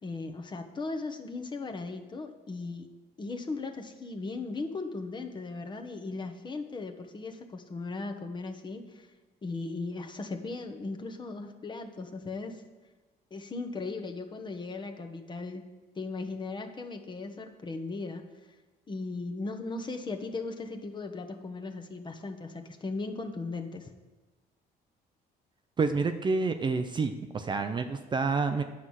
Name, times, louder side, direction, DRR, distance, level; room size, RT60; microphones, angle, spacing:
voice 1, 0.0-2.9 3.2-9.1 9.4-12.6 13.3-15.6 16.0-18.2 18.9-23.9, left 3 dB, 25° left, 5 dB, 1.1 m, -37 dB
voice 2, 25.8-28.6, right 4 dB, 25° right, 7 dB, 0.6 m, -28 dB
9.8 x 5.7 x 6.3 m, 1.2 s
cardioid pair, 110°, 17 cm